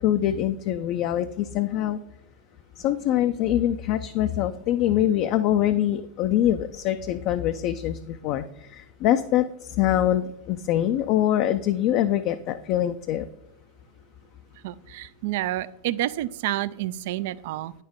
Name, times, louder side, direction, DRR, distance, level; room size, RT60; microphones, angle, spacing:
voice 1, 0.0-2.0 2.8-13.3, left 12 dB, 50° left, 8 dB, 0.4 m, -24 dB
voice 2, 14.6-17.7, right 14 dB, 60° right, 18 dB, 0.3 m, -29 dB
9.2 x 6.6 x 3.6 m, 0.80 s
figure-of-eight pair, 90°, 0 cm